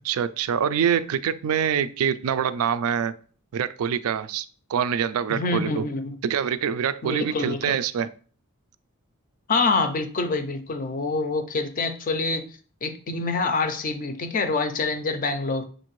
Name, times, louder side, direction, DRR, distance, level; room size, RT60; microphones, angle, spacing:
voice 1, 0.0-3.1 3.5-5.9 6.2-8.1, right 8 dB, 80° right, 14 dB, 0.3 m, -25 dB
voice 2, 5.3-6.1 7.0-7.7 9.5-12.4 12.8-15.6, left 3 dB, 40° left, 9 dB, 0.4 m, -26 dB
6.5 x 2.5 x 3.1 m, 0.41 s
head